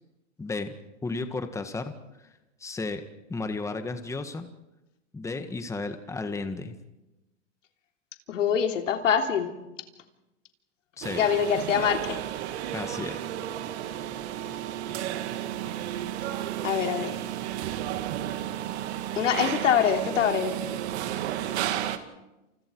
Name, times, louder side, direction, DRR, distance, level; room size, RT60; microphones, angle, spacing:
voice 1, 0.4-0.7 1.0-1.9 2.6-3.0 3.3-4.5 5.1-6.7 11.0-11.2 12.7-13.2, left 3 dB, 10° left, 8 dB, 1.7 m, -33 dB
voice 2, 8.3-9.5 11.1-12.2 16.6-17.1 19.2-20.6, left 8 dB, 85° left, 4 dB, 3.5 m, -24 dB
sound 1, 11.0-22.0, right 12 dB, 60° right, 2.4 m, -32 dB
30.0 x 28.5 x 4.7 m, 1.0 s
hypercardioid pair, 130°, 37 cm